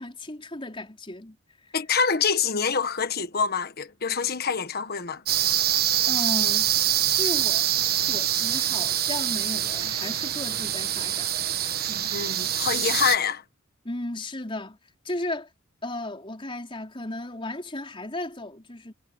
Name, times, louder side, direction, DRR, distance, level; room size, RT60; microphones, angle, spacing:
voice 1, 0.0-1.4 6.1-6.7 7.2-11.3 11.9-12.1 13.8-14.8 15.0-15.5 15.8-18.9, left 1 dB, 25° left, 4.5 m, -35 dB
voice 2, 1.7-5.2 11.8-13.4, left 6 dB, 50° left, 1.3 m, -26 dB
sound 1, 5.3-13.2, right 11 dB, 50° right, 1.2 m, -25 dB
head